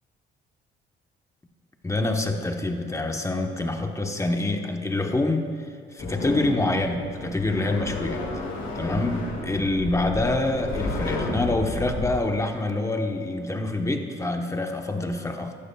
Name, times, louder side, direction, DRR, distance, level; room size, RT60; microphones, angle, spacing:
voice 1, 1.8-8.3 8.7-15.5, left 2 dB, 15° left, 4 dB, 1.0 m, -26 dB
sound 1, 6.0-12.2, left 2 dB, 90° left, 2.0 m, -32 dB
15.5 x 12.0 x 2.3 m, 2.2 s
cardioid pair, 90°, 20 cm